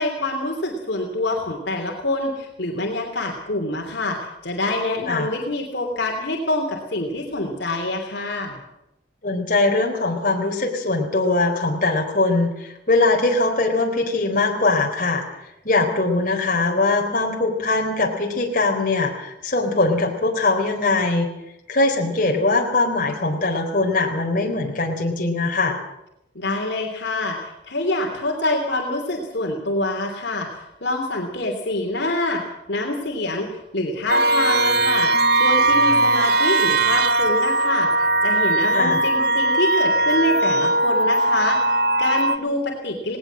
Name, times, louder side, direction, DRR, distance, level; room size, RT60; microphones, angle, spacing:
voice 1, 0.0-8.6 26.3-43.2, left 2 dB, 65° left, 1 dB, 3.1 m, -26 dB
voice 2, 9.2-15.2 15.6-21.3 21.7-25.8 38.7-39.0, left 3 dB, 45° left, 1 dB, 4.0 m, -21 dB
sound 1, 34.1-42.4, right 2 dB, 55° right, 0.8 m, -19 dB
19.0 x 18.5 x 7.5 m, 0.86 s
head